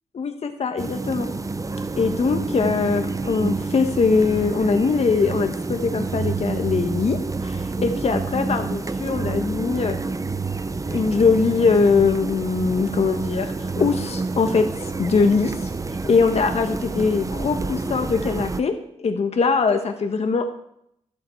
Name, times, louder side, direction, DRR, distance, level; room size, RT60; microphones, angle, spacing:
voice 1, 0.1-1.3 2.0-7.2 7.4-10.0 10.9-14.6 15.0-15.7 16.0-20.5, left 4 dB, 60° left, 6 dB, 1.2 m, -21 dB
sound 1, 0.8-18.6, right 3 dB, 30° right, 0.7 m, -28 dB
12.5 x 12.0 x 4.5 m, 0.73 s
cardioid pair, 65°, 12 cm